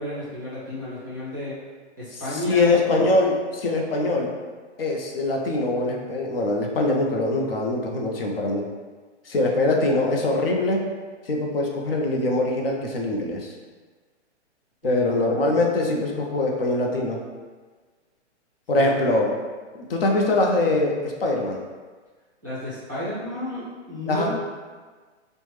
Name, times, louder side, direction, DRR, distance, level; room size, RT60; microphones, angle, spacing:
voice 1, 0.0-1.5 2.0-2.7 14.8-15.1 15.8-15.9 18.7-18.9 22.4-24.3, left 1 dB, 20° right, -11 dB, 0.4 m, -32 dB
voice 2, 2.3-4.3 4.8-8.6 9.3-10.9 11.3-13.5 14.8-17.2 18.7-19.3 19.9-21.6 24.1-24.3, left 2 dB, 55° left, 0 dB, 0.4 m, -23 dB
3.1 x 2.1 x 3.1 m, 1.4 s
hypercardioid pair, 180°, 36 cm